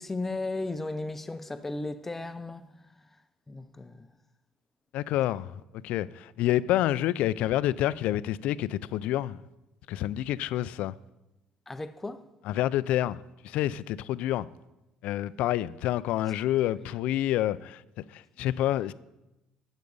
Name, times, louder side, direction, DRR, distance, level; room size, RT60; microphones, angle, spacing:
voice 1, 0.0-2.9 3.5-4.1 11.7-12.2 18.4-18.5, left 2 dB, 10° left, 0.5 m, -35 dB
voice 2, 4.9-9.4 9.9-10.9 12.5-13.2 13.4-14.5 15.0-17.8 18.1-18.9, left 13 dB, 65° left, 0.4 m, -28 dB
11.5 x 8.1 x 5.4 m
cardioid pair, 175°, 2 cm